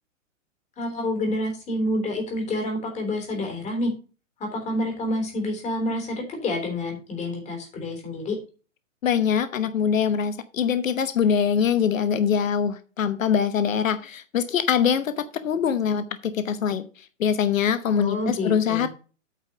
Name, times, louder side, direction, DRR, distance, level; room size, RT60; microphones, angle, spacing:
voice 1, 0.8-3.9 4.4-8.4 17.9-18.9, left 1 dB, 20° left, 2 dB, 3.3 m, -28 dB
voice 2, 9.0-16.8 17.2-18.9, left 7 dB, 80° left, 12 dB, 1.1 m, -23 dB
8.9 x 5.1 x 6.7 m, 0.35 s
hypercardioid pair, 145°, 39 cm